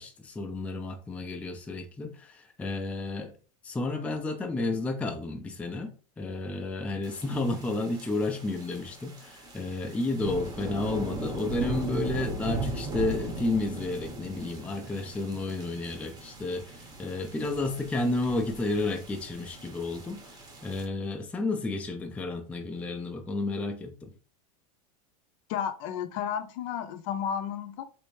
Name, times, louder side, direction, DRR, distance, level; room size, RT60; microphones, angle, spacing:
voice 1, 0.0-3.3 3.6-24.1, left 2 dB, 5° left, 0.4 m, -31 dB
sound 1, 7.0-20.8, right 2 dB, 20° right, 0.7 m, -38 dB
voice 2, 25.5-27.8, left 8 dB, 60° left, 0.6 m, -32 dB
3.2 x 2.6 x 3.1 m
supercardioid pair, 140°, 19 cm